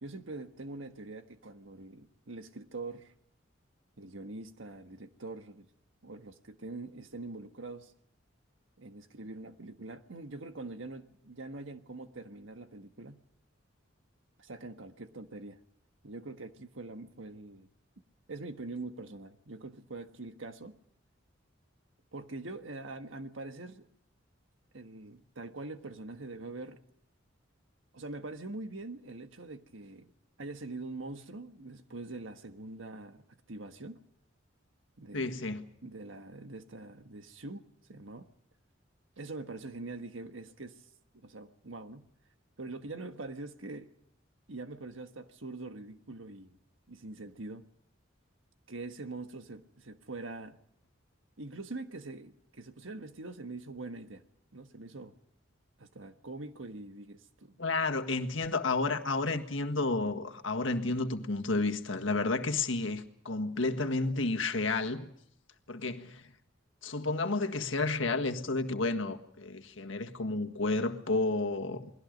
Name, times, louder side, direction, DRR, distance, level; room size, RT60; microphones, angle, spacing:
voice 1, 0.0-3.1 4.0-5.7 6.0-7.9 8.8-13.2 14.4-15.6 16.0-17.7 18.3-20.8 22.1-23.9 24.7-26.8 27.9-30.1 30.4-34.0 35.0-35.5 35.8-38.3 39.2-40.7 41.2-42.1 42.6-43.9 44.5-46.6 46.9-47.6 48.7-50.6 51.4-54.2 54.5-55.2 55.8-57.6, right 2 dB, 80° right, 1.5 m, -44 dB
voice 2, 35.1-35.7 57.6-65.1 65.7-66.2 66.8-71.9, left 3 dB, 75° left, 1.7 m, -31 dB
29.0 x 21.0 x 5.3 m
head